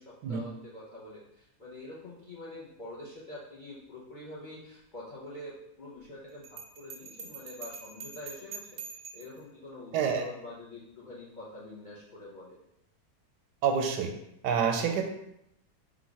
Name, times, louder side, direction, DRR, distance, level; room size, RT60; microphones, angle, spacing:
voice 1, 0.0-8.8 9.1-12.6, left 1 dB, 45° left, -6 dB, 0.6 m, -45 dB
Bell, 6.4-9.4, right 5 dB, 65° right, 0.6 m, -44 dB
voice 2, 9.9-10.2 13.6-14.1 14.4-15.1, right 6 dB, 85° right, 4 dB, 1.2 m, -27 dB
3.8 x 2.4 x 4.6 m, 0.79 s
omnidirectional pair, 1.8 m